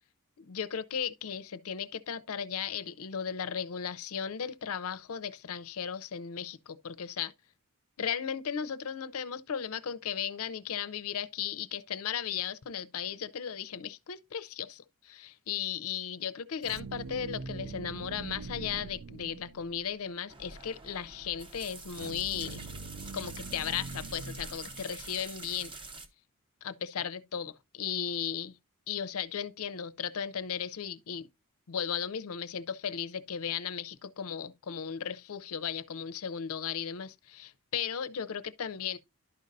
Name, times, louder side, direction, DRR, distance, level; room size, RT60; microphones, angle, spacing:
voice 1, 0.4-7.3 8.0-22.6 23.1-25.7 26.6-28.6 28.9-31.3 31.7-39.0, left 8 dB, 85° left, 0.5 m, -36 dB
sound 1, 16.6-19.9 21.9-25.2, right 4 dB, 85° right, 0.4 m, -43 dB
sound 2, 20.3-26.1, right 3 dB, 25° right, 0.8 m, -46 dB
11.5 x 5.2 x 2.6 m
head